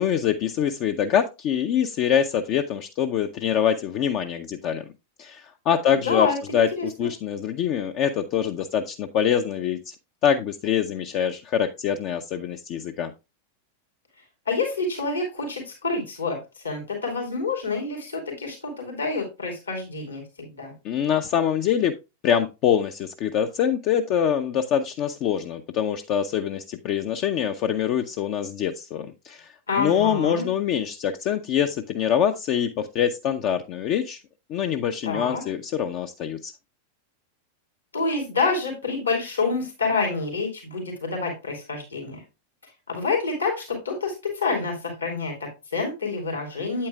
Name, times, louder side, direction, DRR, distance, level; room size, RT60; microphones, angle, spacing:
voice 1, 0.0-4.9 5.2-6.3 6.5-9.9 10.2-13.1 20.8-21.9 22.2-29.5 29.8-34.2 34.5-36.5, left 9 dB, 40° left, 7 dB, 0.5 m, -24 dB
voice 2, 5.9-7.1 14.5-20.7 29.7-30.5 35.0-35.4 37.9-42.2 42.6-46.9, left 4 dB, 75° left, 1 dB, 2.8 m, -28 dB
8.6 x 8.5 x 2.3 m, 0.26 s
figure-of-eight pair, 90°, 0 cm